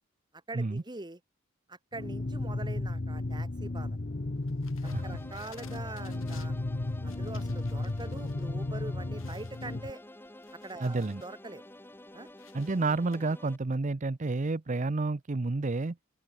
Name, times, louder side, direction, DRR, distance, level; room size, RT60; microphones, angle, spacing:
voice 1, 0.5-1.2 1.7-4.0 4.8-6.6 7.0-10.0 10.6-11.6 12.1-12.3, right 2 dB, 20° right, 1.6 m, -43 dB
sound 1, 1.9-9.9, left 2 dB, 45° left, 0.8 m, -34 dB
sound 2, 4.5-8.4 8.8-8.9 9.2-11.4 11.8-13.2, left 8 dB, 85° left, 6.7 m, -57 dB
sound 3, 4.8-13.6, left 1 dB, 10° left, 2.2 m, -50 dB
voice 2, 10.8-11.2 12.5-16.0, right 3 dB, 40° right, 0.6 m, -30 dB
open air
head